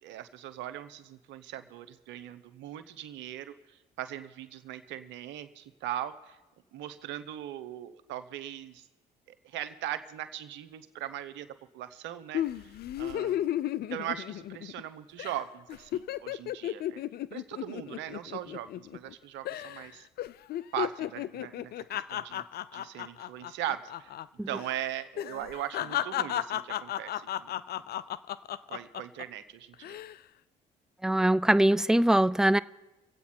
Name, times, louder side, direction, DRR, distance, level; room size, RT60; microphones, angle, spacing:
voice 1, 0.0-3.5 4.0-6.4 6.7-8.8 9.4-11.5 11.7-13.5 13.9-17.0 17.3-20.1 20.7-22.4 22.7-24.1 24.5-27.5 28.7-30.0, right 12 dB, 75° right, 13 dB, 0.8 m, -39 dB
sound 1, 12.3-14.9 15.2-15.4 15.7-19.1 19.5-19.9 20.2-24.3 24.5-24.7 25.2-29.2 29.7-30.2, left 12 dB, 60° left, 0.4 m, -34 dB
voice 2, 31.0-32.6, right 1 dB, 5° right, 16 dB, 0.4 m, -22 dB
24.5 x 8.2 x 4.4 m, 1.0 s
supercardioid pair, 60°, 19 cm